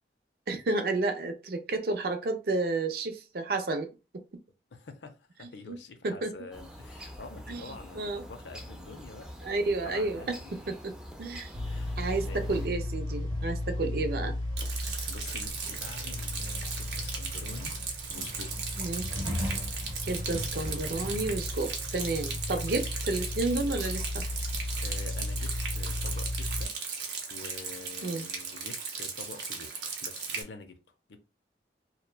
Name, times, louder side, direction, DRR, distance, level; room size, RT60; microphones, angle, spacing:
voice 1, 0.5-3.9 4.1-4.2 5.7-5.8 6.0-6.3 7.5-8.2 9.4-10.9 11.2-11.5 12.0-14.4 18.8-19.1 20.0-24.2 28.0-28.3, right 3 dB, 55° right, 0.5 m, -31 dB
voice 2, 4.7-9.3 9.8-10.5 11.6-12.6 15.1-18.6 24.8-26.7 27.3-29.7 30.0-30.8 31.1-31.2, left 4 dB, 85° left, 0.5 m, -47 dB
sound 1, 6.5-12.7, equal, 5° right, 0.4 m, -46 dB
sound 2, 11.5-26.7, left 1 dB, 25° right, 0.8 m, -35 dB
Rain, 14.6-30.4, right 5 dB, 85° right, 0.7 m, -37 dB
2.8 x 2.2 x 2.2 m
head